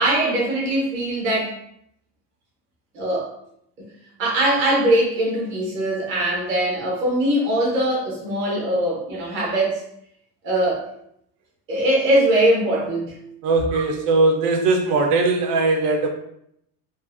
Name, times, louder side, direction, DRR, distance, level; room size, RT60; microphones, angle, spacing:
voice 1, 0.0-1.5 2.9-3.3 4.2-9.8 10.4-10.8 11.7-13.2 13.7-13.8, right 1 dB, 25° right, -4 dB, 0.6 m, -21 dB
voice 2, 13.4-16.1, right 3 dB, 75° right, 3 dB, 0.6 m, -19 dB
2.5 x 2.4 x 2.4 m, 0.73 s
cardioid pair, 170°, 50 cm